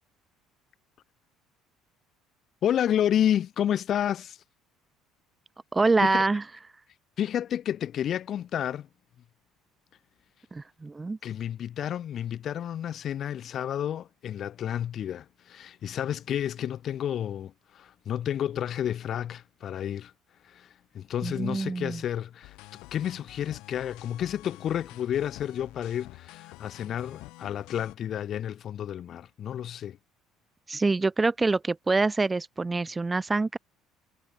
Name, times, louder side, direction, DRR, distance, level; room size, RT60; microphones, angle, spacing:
voice 1, 2.6-4.4 6.0-6.2 7.2-8.9 11.2-20.1 20.4-20.7 20.9-22.6 22.9-30.0, left 10 dB, 55° left, 8.0 m, -30 dB
voice 2, 5.7-6.4 10.5-11.2 21.2-22.0 30.7-33.6, right 3 dB, 20° right, 1.7 m, -25 dB
sound 1, 22.4-27.9, left 22 dB, 70° left, 7.1 m, -48 dB
hypercardioid pair, 65°, 0 cm